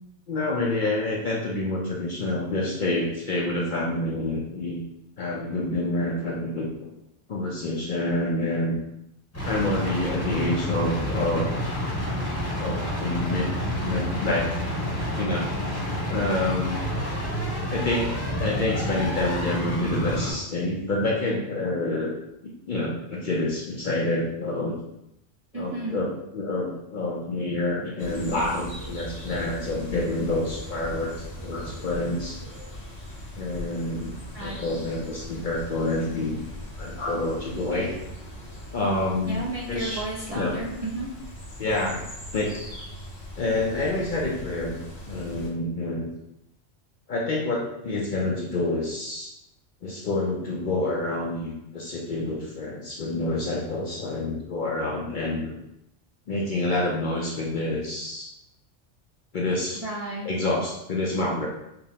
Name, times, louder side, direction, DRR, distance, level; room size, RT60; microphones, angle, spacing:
voice 1, 0.3-4.8 5.2-6.9 7.3-8.8 9.4-11.5 12.6-13.5 13.8-15.8 16.1-16.8 17.7-22.1 22.4-24.8 25.5-32.4 33.4-34.1 34.4-36.4 36.8-37.9 38.7-40.0 40.3-40.5 41.6-42.0 42.3-42.5 43.4-44.8 45.1-46.1 47.1-49.3 49.8-55.5 56.3-58.3 59.3-59.8 60.2-61.5, left 2 dB, 55° left, -3 dB, 0.6 m, -28 dB
sound 1, 9.3-20.3, equal, 15° left, 0.7 m, -29 dB
voice 2, 25.5-26.0 34.3-34.6 39.3-41.1 59.8-60.3, right 2 dB, 45° right, -6 dB, 0.5 m, -32 dB
sound 2, 28.0-45.5, equal, 85° left, 1.4 m, -40 dB
5.1 x 2.0 x 2.7 m, 0.84 s
omnidirectional pair, 1.3 m